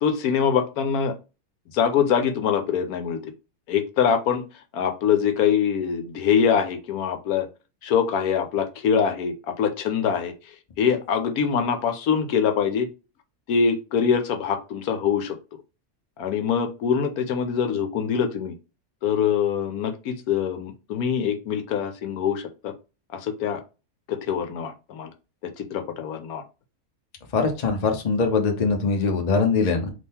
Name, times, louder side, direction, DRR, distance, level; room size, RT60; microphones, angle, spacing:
voice 1, 0.0-1.1 1.7-3.2 3.7-4.4 4.7-7.5 7.8-12.9 13.5-15.4 16.2-18.5 19.0-22.7 23.1-23.6 24.1-25.1 25.4-26.4, left 7 dB, 75° left, 7 dB, 1.1 m, -24 dB
voice 2, 27.3-29.9, left 4 dB, 40° left, 4 dB, 0.6 m, -22 dB
3.7 x 2.8 x 4.2 m, 0.31 s
omnidirectional pair, 1.6 m